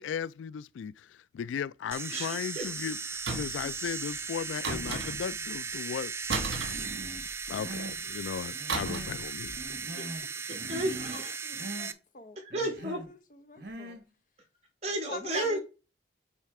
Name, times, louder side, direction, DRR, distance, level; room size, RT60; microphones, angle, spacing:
voice 1, 0.0-3.0 3.3-6.1 6.8-6.9 7.5-9.9, left 7 dB, 85° left, 0.3 m, -36 dB
sound 1, 1.9-11.9, right 5 dB, 15° right, 0.3 m, -37 dB
voice 2, 2.1-2.8 10.0-10.1 10.4-11.3 12.4-13.0 14.8-15.6, right 1 dB, 35° right, 2.0 m, -33 dB
sound 2, 3.3-3.7 4.6-5.4 6.3-7.5 8.7-9.2 9.5-9.7, right 4 dB, 75° right, 1.3 m, -34 dB
Human voice, 6.6-7.2 7.5-8.0 8.5-9.2 9.5-10.3 10.5-11.2 11.5-11.9 12.5-13.1 13.6-14.0, right 2 dB, 55° right, 1.4 m, -42 dB
voice 3, 11.4-12.4 13.5-14.0 15.1-15.6, left 3 dB, 45° left, 0.8 m, -44 dB
8.9 x 3.2 x 4.7 m
head